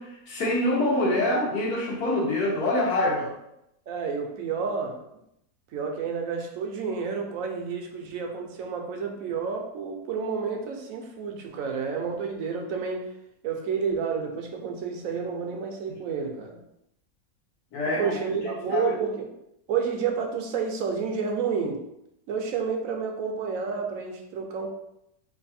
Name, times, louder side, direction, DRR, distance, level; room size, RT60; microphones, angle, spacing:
voice 1, 0.0-3.3 17.7-18.1 18.7-18.8, left 1 dB, 80° left, -3 dB, 1.5 m, -25 dB
voice 2, 3.9-5.0 5.7-13.1 13.4-16.6 17.9-19.2 19.7-21.8 22.3-24.7, right 6 dB, 70° right, 2 dB, 1.0 m, -30 dB
3.3 x 2.5 x 4.1 m, 0.80 s
omnidirectional pair, 1.6 m